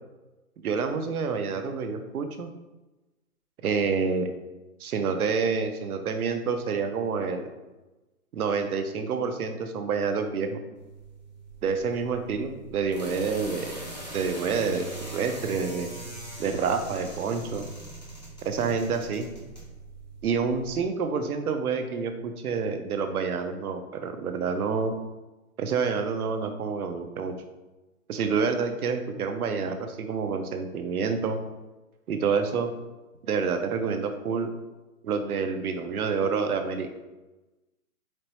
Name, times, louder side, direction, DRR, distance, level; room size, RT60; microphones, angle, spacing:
voice 1, 0.6-2.5 3.6-4.3 4.8-7.5 8.3-10.6 11.6-13.7 14.1-15.9 16.4-17.7 18.4-19.3 20.2-24.9 25.6-27.3 28.1-31.4 32.1-32.7 33.3-34.5 35.0-36.9, right 5 dB, 75° right, 7 dB, 0.7 m, -28 dB
sound 1, 10.7-20.8, right 2 dB, 30° left, 0.4 m, -41 dB
4.3 x 3.1 x 2.9 m, 1.1 s
hypercardioid pair, 175°, 44 cm